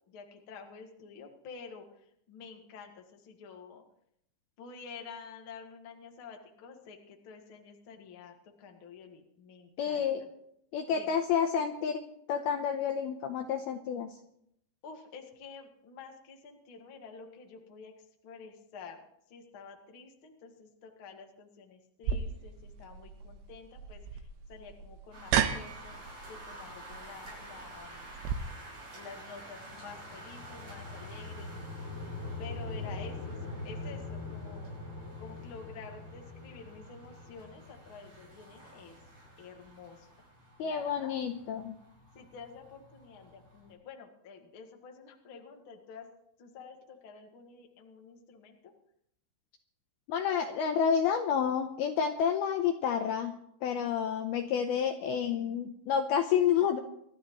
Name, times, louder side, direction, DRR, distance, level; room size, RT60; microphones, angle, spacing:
voice 1, 0.1-1.9 2.3-3.8 4.6-10.1 10.9-11.2 14.8-17.9 18.2-19.0 19.3-28.1 28.9-31.5 32.4-33.4 33.6-34.8 35.2-39.0 39.4-40.1 40.6-41.2 42.1-46.1 46.4-48.7, left 5 dB, 50° left, 2 dB, 1.5 m, -49 dB
voice 2, 9.8-10.2 10.7-12.0 12.3-14.1 40.6-41.7 50.1-53.3 53.6-56.8, left 7 dB, 80° left, 5 dB, 2.3 m, -29 dB
sound 1, 22.0-28.4, right 8 dB, 85° right, 3.3 m, -35 dB
sound 2, 25.1-43.7, right 1 dB, 40° right, 7.0 m, -51 dB
sound 3, 29.2-39.5, left 3 dB, 15° left, 3.1 m, -43 dB
26.0 x 13.0 x 3.1 m, 0.72 s
omnidirectional pair, 5.4 m